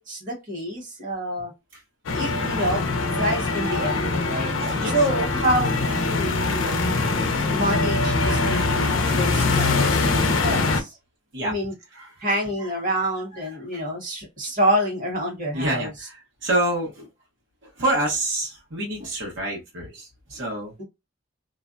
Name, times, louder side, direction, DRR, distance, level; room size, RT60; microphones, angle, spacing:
voice 1, 0.1-1.5 2.1-2.9 3.2-4.5 4.8-6.8 7.5-10.9 11.4-11.7 12.2-16.1 20.8-20.9, right 1 dB, 45° right, 1.3 m, -27 dB
sound 1, 2.1-10.8, left 3 dB, 80° left, 0.5 m, -23 dB
voice 2, 4.6-4.9 8.3-8.7 9.0-9.2 10.1-10.3 11.3-11.5 15.5-15.9 16.4-17.1 17.8-20.7, right 1 dB, 70° right, 1.1 m, -27 dB
2.5 x 2.2 x 2.4 m
head